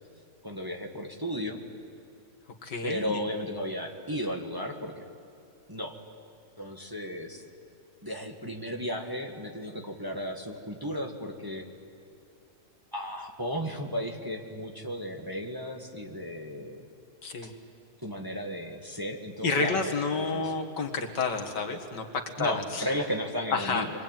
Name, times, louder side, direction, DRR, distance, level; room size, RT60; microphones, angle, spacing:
voice 1, 0.4-1.6 2.8-5.0 5.7-6.0 6.6-7.4 8.0-11.7 12.9-16.9 17.4-17.5 18.0-19.9 20.3-20.5 22.4-23.9, equal, 15° right, 1 dB, 1.8 m, -34 dB
voice 2, 2.6-3.2 17.2-17.5 19.4-22.9 23.5-23.8, left 4 dB, 90° left, 3 dB, 2.5 m, -30 dB
27.5 x 23.0 x 9.2 m, 2.6 s
omnidirectional pair, 1.8 m